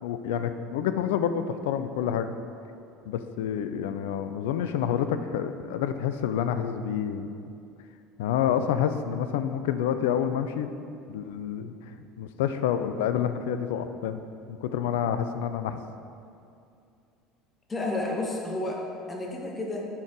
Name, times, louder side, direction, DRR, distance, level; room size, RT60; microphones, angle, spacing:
voice 1, 0.0-2.3 3.1-7.3 8.2-10.7 11.1-11.7 12.0-14.2 14.5-15.8, left 9 dB, 70° left, 10 dB, 0.4 m, -28 dB
voice 2, 17.7-19.9, left 2 dB, 25° left, 0 dB, 1.5 m, -31 dB
10.5 x 4.4 x 4.8 m, 2.5 s
figure-of-eight pair, 65°, 0 cm